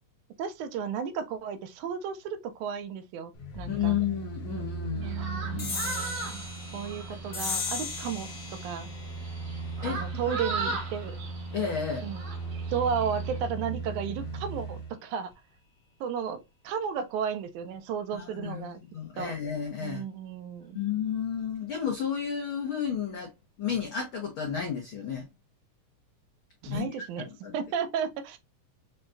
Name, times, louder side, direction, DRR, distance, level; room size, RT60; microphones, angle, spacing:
voice 1, 0.4-4.0 4.9-6.4 6.7-8.9 9.8-11.2 12.0-12.2 12.7-15.3 16.0-16.4 16.6-18.8 19.2-19.3 19.8-20.8 26.6-27.3 27.5-28.4, right 7 dB, 80° right, 2.0 m, -34 dB
sound 1, 3.3-14.9 15.3-15.4, right 3 dB, 65° left, 1.3 m, -38 dB
voice 2, 3.7-5.7 9.8-10.0 10.3-10.4 11.5-12.1 18.1-20.0 20.7-23.3 23.6-25.3 26.6-26.9 27.2-27.5, left 8 dB, 80° left, 1.1 m, -32 dB
sound 2, 5.0-13.4, right 4 dB, 65° right, 1.6 m, -39 dB
sound 3, 5.6-12.4, left 4 dB, 30° left, 0.9 m, -39 dB
6.3 x 2.2 x 2.5 m
omnidirectional pair, 3.6 m